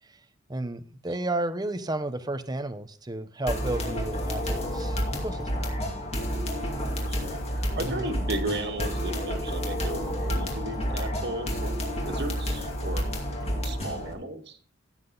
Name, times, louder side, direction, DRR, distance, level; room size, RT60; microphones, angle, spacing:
voice 1, 0.5-5.7 7.8-8.1, right 2 dB, 20° right, 11 dB, 0.8 m, -32 dB
sound 1, 3.5-14.1, equal, 30° left, 2.4 m, -30 dB
voice 2, 6.2-6.5 6.8-11.8 12.0-13.0 13.4-14.6, right 2 dB, 55° right, 3 dB, 1.8 m, -35 dB
15.5 x 7.5 x 3.9 m, 0.43 s
head